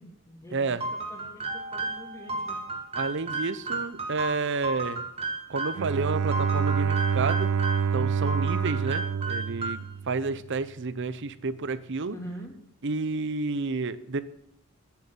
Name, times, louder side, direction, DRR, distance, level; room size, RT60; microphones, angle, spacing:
voice 1, 0.0-2.6 12.0-12.5, equal, 15° left, 2 dB, 2.5 m, -44 dB
voice 2, 0.5-0.8 3.0-5.0 5.5-7.5 7.9-12.2 12.8-14.2, right 4 dB, 55° right, 14 dB, 0.7 m, -30 dB
sound 1, 0.8-5.9 6.3-7.9 8.3-10.0, right 2 dB, 30° right, 1.9 m, -33 dB
Mallet percussion, 1.5-3.7, equal, 45° left, 3.6 m, -46 dB
Bowed string instrument, 5.7-10.4, right 6 dB, 85° right, 0.4 m, -27 dB
9.8 x 8.2 x 8.8 m, 0.76 s
head